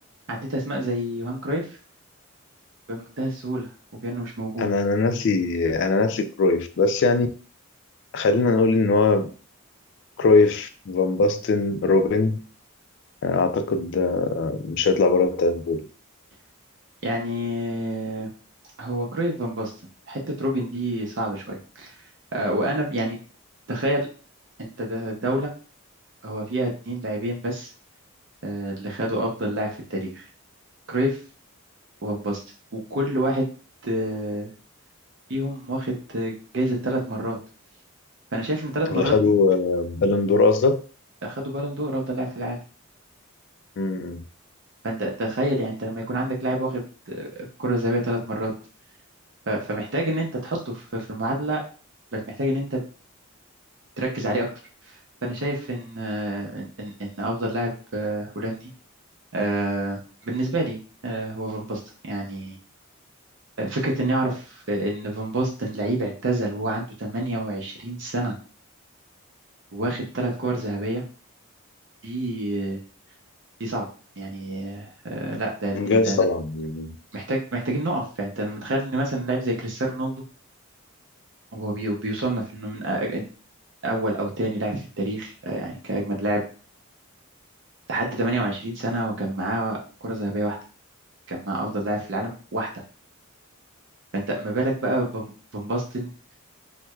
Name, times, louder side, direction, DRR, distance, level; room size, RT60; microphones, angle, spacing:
voice 1, 0.3-1.8 2.9-3.7 4.0-4.7 17.0-18.3 18.8-19.7 20.1-22.0 22.3-23.2 23.7-24.1 24.6-25.5 26.2-27.7 28.4-30.3 30.9-31.2 32.0-32.4 32.7-33.5 33.8-34.5 35.3-37.4 38.3-39.1 41.2-42.6 44.8-48.5 49.5-51.6 52.1-52.8 54.0-54.5 54.8-55.0 55.2-58.7 59.3-60.8 61.0-62.6 63.6-68.4 69.7-71.0 72.0-72.8 73.6-73.9 74.2-76.2 77.1-80.1 81.5-83.2 83.8-86.4 87.9-90.6 91.3-92.8 94.1-96.1, right 1 dB, 55° right, 0.6 m, -28 dB
voice 2, 4.6-7.3 8.1-9.3 10.2-12.4 13.2-15.8 38.9-40.8 43.8-44.2 75.7-77.0, left 3 dB, 55° left, 0.3 m, -21 dB
4.4 x 2.1 x 2.3 m
head